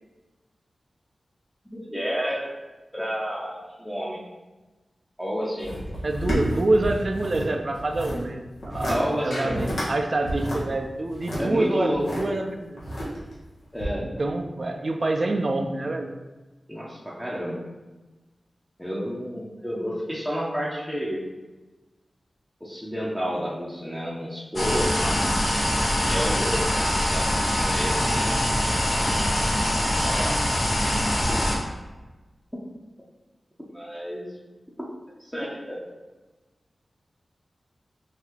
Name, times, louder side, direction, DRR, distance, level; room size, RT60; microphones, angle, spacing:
voice 1, 1.7-2.5 2.9-4.2 5.2-5.8 8.9-9.7 11.4-12.1 13.7-14.1 16.7-17.6 18.8-21.2 22.6-25.3 26.1-28.0 28.9-29.3 30.0-30.4 31.3-31.8 33.7-34.3 35.2-35.9, equal, ahead, -6 dB, 0.7 m, -30 dB
sound 1, 5.6-7.5 7.7-8.2 8.6-9.0 9.3-9.9 10.2-12.2 12.8-13.4 13.8-13.9, equal, 85° left, 1.4 m, -30 dB
voice 2, 6.0-12.8 14.0-16.1, right 2 dB, 45° right, 5 dB, 0.4 m, -26 dB
sound 2, 24.6-31.6, equal, 55° left, 0.8 m, -23 dB
5.7 x 2.7 x 2.9 m, 1.2 s
wide cardioid pair, 105°, 0 cm